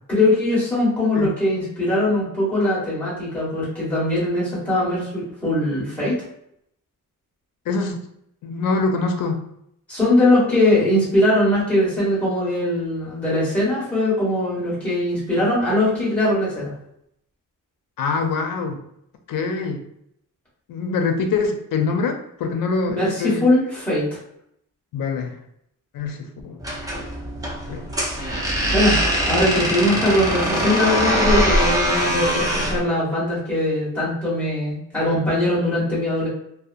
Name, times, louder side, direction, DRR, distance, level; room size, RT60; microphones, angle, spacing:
voice 1, 0.1-6.1 9.9-16.7 22.9-24.2 28.7-36.3, left 1 dB, 5° left, -9 dB, 1.3 m, -21 dB
voice 2, 7.7-8.1 8.4-9.5 18.0-18.8 19.3-19.8 20.7-23.5 24.9-25.4 25.9-26.6 27.7-28.1 29.3-29.4, left 4 dB, 85° left, 5 dB, 0.5 m, -24 dB
sound 1, 26.6-32.8, equal, 10° right, 0.5 m, -22 dB
2.7 x 2.1 x 2.4 m, 0.75 s
wide cardioid pair, 155°, 33 cm